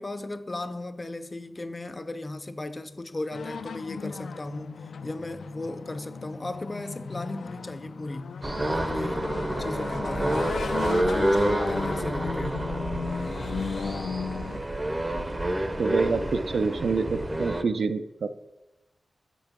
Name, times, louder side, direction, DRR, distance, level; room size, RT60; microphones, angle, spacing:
voice 1, 0.0-8.4 8.7-12.7, left 2 dB, 30° left, 0.5 m, -36 dB
sound 1, 3.3-14.6, left 5 dB, 90° left, 0.3 m, -35 dB
sound 2, 8.4-17.6, right 1 dB, 20° right, 0.6 m, -28 dB
voice 2, 15.8-18.3, right 4 dB, 80° right, 0.5 m, -27 dB
7.5 x 5.3 x 6.0 m
wide cardioid pair, 100°, 0 cm